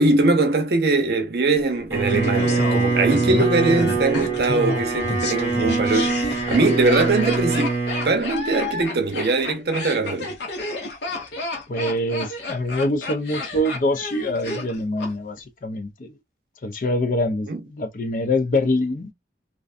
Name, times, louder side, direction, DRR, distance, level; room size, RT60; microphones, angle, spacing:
voice 1, 0.0-7.7 8.0-10.4 17.5-17.6, right 3 dB, 65° right, 0.6 m, -21 dB
Bowed string instrument, 1.9-8.2, right 4 dB, 15° right, 0.7 m, -24 dB
Laughter, 2.1-15.1 15.4-15.5, left 2 dB, 75° left, 0.8 m, -30 dB
voice 2, 11.7-16.1 16.6-19.1, left 1 dB, 50° left, 0.4 m, -24 dB
2.5 x 2.2 x 2.4 m
head